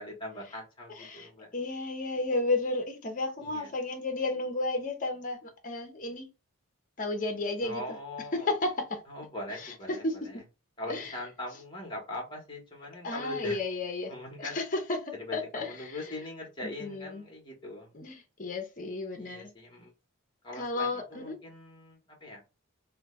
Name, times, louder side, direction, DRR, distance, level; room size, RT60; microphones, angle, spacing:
voice 1, 0.0-1.5 3.4-3.7 7.6-8.5 9.1-10.4 10.8-13.6 14.1-14.6 15.1-18.0 19.2-19.9 20.4-22.4, left 1 dB, 20° left, 1.2 m, -41 dB
voice 2, 1.0-6.3 7.0-7.8 8.3-9.0 9.6-9.7 10.0-10.4 10.9-11.1 13.0-14.1 14.4-15.9 16.8-17.2 17.9-19.5 20.5-21.4, left 2 dB, 40° left, 0.8 m, -33 dB
3.1 x 2.2 x 3.1 m
head